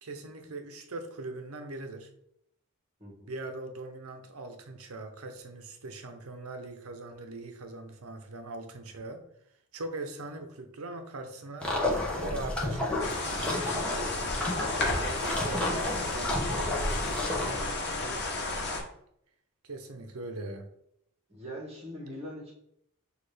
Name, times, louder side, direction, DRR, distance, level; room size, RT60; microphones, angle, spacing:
voice 1, 0.0-2.1 3.3-9.2 9.7-11.8 12.2-13.1 19.6-20.7, right 2 dB, 75° right, 0.7 m, -41 dB
voice 2, 3.0-3.3 13.9-14.4 14.9-16.4 16.8-18.2 21.3-22.5, equal, 30° right, 1.3 m, -42 dB
sound 1, 11.6-17.6, left 1 dB, 5° left, 0.9 m, -31 dB
sound 2, 13.0-18.8, left 2 dB, 50° left, 0.9 m, -32 dB
6.3 x 2.5 x 3.3 m
head